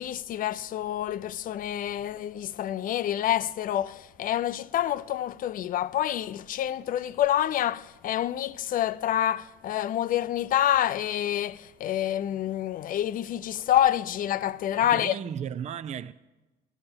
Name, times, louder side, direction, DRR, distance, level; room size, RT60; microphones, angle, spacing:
voice 1, 0.0-15.2, left 11 dB, 55° left, 0.5 m, -27 dB
voice 2, 14.8-16.1, right 8 dB, 40° right, 0.5 m, -35 dB
12.0 x 11.5 x 8.7 m
cardioid pair, 110°, 17 cm